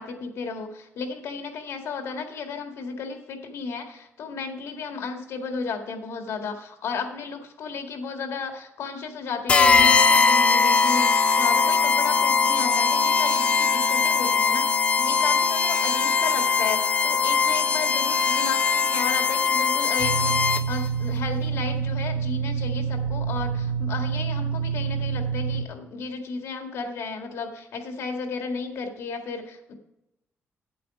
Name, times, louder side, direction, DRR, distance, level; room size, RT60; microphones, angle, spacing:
voice 1, 0.0-29.7, left 5 dB, 75° left, 4 dB, 1.8 m, -33 dB
sound 1, 9.5-20.9, left 5 dB, 25° left, 0.5 m, -21 dB
sound 2, 20.0-25.6, right 6 dB, 35° right, 1.0 m, -27 dB
9.4 x 8.3 x 4.9 m, 0.84 s
wide cardioid pair, 175°, 5 cm